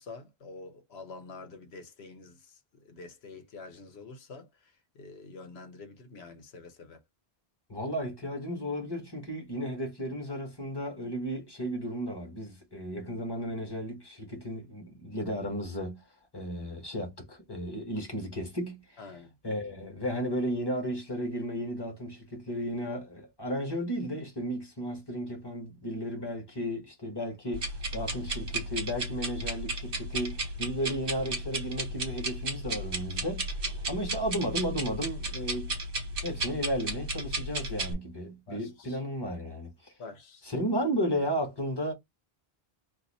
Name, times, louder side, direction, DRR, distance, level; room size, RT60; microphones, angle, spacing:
voice 1, 0.0-7.0 19.0-19.3 33.8-33.9 38.5-39.0 40.0-40.5, left 3 dB, 90° left, 1.1 m, -47 dB
voice 2, 7.7-16.0 16.3-19.0 19.4-33.5 33.9-35.8 36.2-39.7 40.5-41.9, equal, 25° left, 1.3 m, -34 dB
sound 1, 27.5-37.9, right 2 dB, 60° right, 1.3 m, -34 dB
2.7 x 2.7 x 4.0 m
omnidirectional pair, 1.0 m